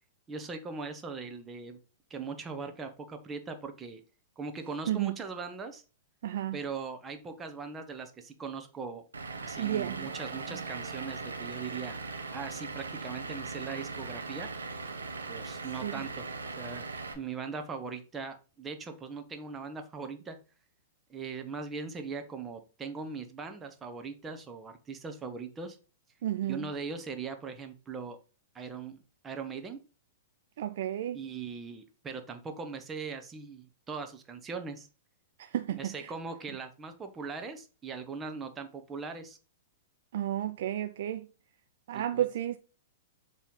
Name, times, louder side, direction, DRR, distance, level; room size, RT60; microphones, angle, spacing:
voice 1, 0.3-1.8 2.1-4.0 4.4-5.8 6.5-9.0 9.4-12.0 12.3-14.5 15.3-16.2 16.6-16.9 17.1-20.4 21.1-25.8 26.5-28.2 28.5-29.8 31.1-34.9 35.7-39.4 41.9-42.3, right 5 dB, 20° right, 1.3 m, -40 dB
voice 2, 6.2-6.6 9.6-10.1 15.8-16.0 26.2-26.7 30.6-31.2 35.4-36.1 40.1-41.3 41.9-42.6, right 11 dB, 60° right, 0.5 m, -32 dB
Vehicle / Engine, 9.1-17.1, right 4 dB, 90° right, 1.3 m, -39 dB
7.3 x 3.5 x 5.5 m
hypercardioid pair, 110°, 0 cm